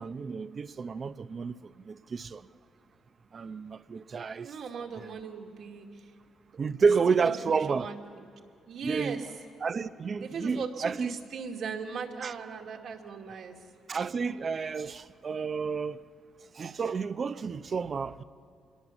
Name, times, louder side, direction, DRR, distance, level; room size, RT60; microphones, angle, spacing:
voice 1, 0.0-2.4 3.3-4.5 4.9-5.1 6.5-7.9 8.8-9.3 9.6-11.1 12.2-12.3 13.9-16.0 16.6-18.2, right 5 dB, 40° right, 0.6 m, -30 dB
voice 2, 4.4-6.1 7.2-7.3 7.7-8.2 8.7-9.3 10.2-13.6, right 6 dB, 65° right, 2.4 m, -38 dB
26.5 x 21.5 x 7.1 m
cardioid pair, 90°, 0 cm